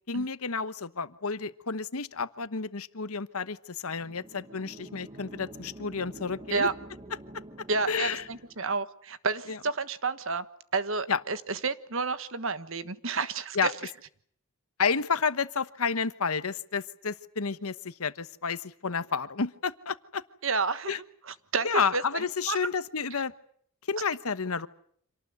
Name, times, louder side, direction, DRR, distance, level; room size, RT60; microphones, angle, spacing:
voice 1, 0.1-6.7 7.9-8.3 9.5-9.6 11.1-11.2 13.5-13.7 14.8-20.2 20.9-21.0 21.6-23.3 23.9-24.7, left 5 dB, 75° left, 13 dB, 1.2 m, -30 dB
sound 1, 3.8-8.8, right 1 dB, 25° right, 1.5 m, -47 dB
voice 2, 7.7-10.4 10.7-13.7 20.4-21.0 21.5-22.6, right 4 dB, 60° right, 13 dB, 1.4 m, -30 dB
27.0 x 19.0 x 9.5 m, 0.63 s
head